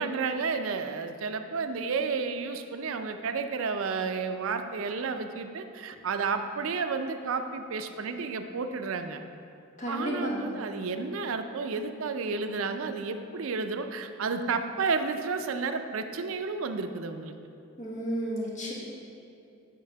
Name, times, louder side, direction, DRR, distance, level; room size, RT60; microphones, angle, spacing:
voice 1, 0.0-9.2 9.9-17.3, right 4 dB, 70° right, 8 dB, 0.4 m, -31 dB
voice 2, 9.8-10.6 17.8-18.7, equal, 35° left, -5 dB, 1.3 m, -32 dB
8.5 x 3.5 x 5.6 m, 2.7 s
head